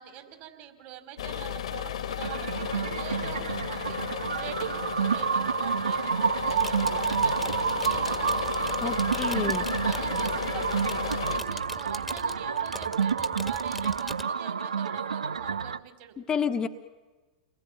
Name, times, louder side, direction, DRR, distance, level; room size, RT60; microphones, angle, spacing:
voice 1, 0.0-9.5 9.8-16.2, right 11 dB, 45° right, 6 dB, 4.9 m, -44 dB
sound 1, 1.2-11.4, left 9 dB, 65° left, 1.7 m, -34 dB
sound 2, 2.2-15.8, right 6 dB, 75° right, 0.8 m, -29 dB
sound 3, 6.4-14.2, left 1 dB, ahead, 1.7 m, -42 dB
voice 2, 8.8-9.7 16.3-16.7, left 7 dB, 20° left, 6 dB, 1.3 m, -29 dB
29.5 x 20.5 x 9.3 m, 1.3 s
figure-of-eight pair, 95°, 4 cm